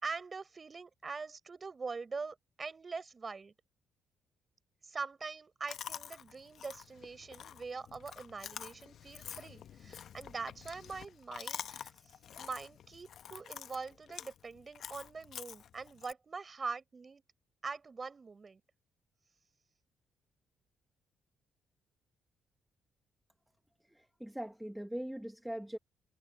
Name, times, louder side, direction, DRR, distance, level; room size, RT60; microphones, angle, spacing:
voice 1, 0.0-3.5 4.8-17.2 17.6-18.6, right 4 dB, 35° right, 4.4 m, -43 dB
Chewing mastication, 5.7-16.1, left 9 dB, 65° left, 0.9 m, -48 dB
voice 2, 23.8-25.8, right 1 dB, 5° right, 0.8 m, -41 dB
cardioid pair, 90°, 0 cm